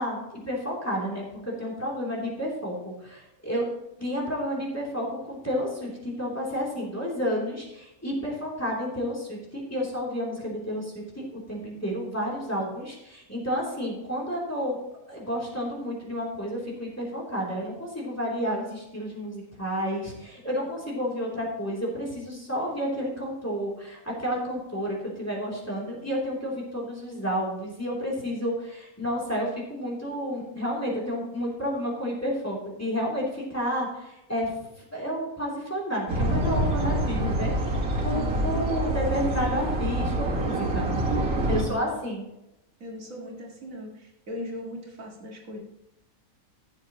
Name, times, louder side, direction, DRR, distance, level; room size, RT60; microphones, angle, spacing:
voice 1, 0.0-3.7 4.0-10.9 11.3-14.8 15.1-34.5 34.9-40.9 41.4-42.2, equal, 10° left, -4 dB, 3.1 m, -31 dB
sound 1, 36.1-41.6, right 1 dB, 90° right, 2.2 m, -26 dB
voice 2, 38.1-38.7 41.5-41.9 42.8-45.6, left 1 dB, 70° right, -1 dB, 2.2 m, -38 dB
14.5 x 7.7 x 3.0 m, 0.89 s
omnidirectional pair, 1.5 m